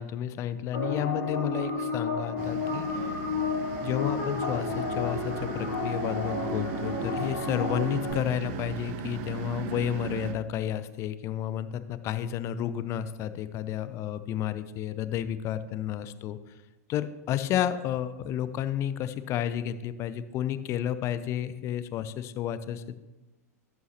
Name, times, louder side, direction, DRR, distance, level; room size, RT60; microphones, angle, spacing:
voice 1, 0.0-3.2 3.8-16.4 16.9-23.0, left 10 dB, 35° left, 13 dB, 0.5 m, -31 dB
sound 1, 0.7-8.1, left 3 dB, 60° left, 3.1 m, -31 dB
sound 2, 2.4-10.3, right 5 dB, 45° right, 0.7 m, -37 dB
12.5 x 5.9 x 3.0 m, 1.1 s
figure-of-eight pair, 100°, 9 cm